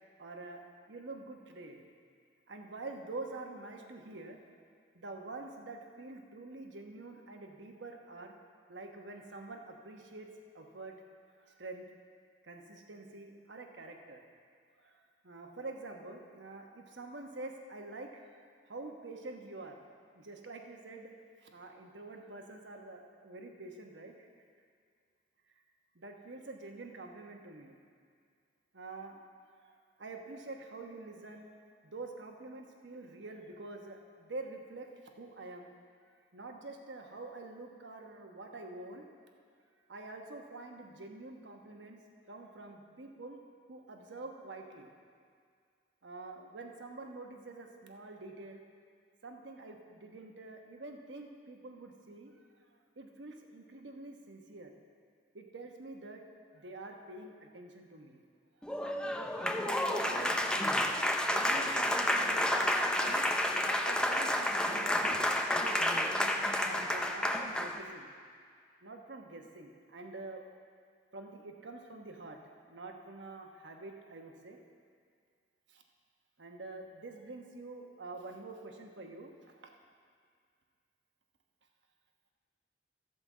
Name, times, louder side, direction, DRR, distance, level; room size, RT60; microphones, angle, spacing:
voice 1, 0.2-1.8 2.5-4.4 4.9-8.3 8.7-10.3 10.5-11.0 11.3-11.9 12.4-14.2 14.8-19.8 20.1-21.1 21.4-24.3 25.9-27.7 28.7-29.2 29.5-31.5 31.8-34.9 35.2-35.7 36.3-39.1 39.9-42.0 42.3-43.4 43.7-44.9 46.0-48.6 49.2-52.5 53.0-54.7 55.3-56.2 56.5-58.2 58.7-58.8 59.5-63.3 63.8-68.1 68.8-70.4 71.1-72.4 72.7-74.6 75.7-75.8 76.4-79.8, right 2 dB, 85° right, 3 dB, 1.1 m, -47 dB
Applause, 58.6-67.8, left 1 dB, 5° left, 0.4 m, -30 dB
13.5 x 5.3 x 7.3 m, 2.2 s
head